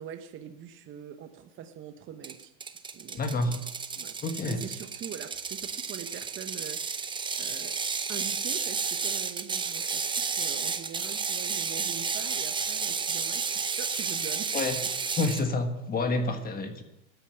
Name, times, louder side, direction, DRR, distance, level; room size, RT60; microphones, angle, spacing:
voice 1, 0.0-2.5 2.9-3.6 4.0-4.2 4.4-6.9 7.4-7.8 8.1-14.5 14.8-14.9, right 9 dB, 35° right, 8 dB, 1.0 m, -43 dB
Ratchet pawl, 2.2-15.4, right 5 dB, 15° right, 0.7 m, -32 dB
voice 2, 3.1-3.5 4.2-4.6 14.5-14.8 15.1-16.8, left 2 dB, 25° left, 7 dB, 1.4 m, -28 dB
13.0 x 7.2 x 8.7 m, 0.89 s
supercardioid pair, 120°, 37 cm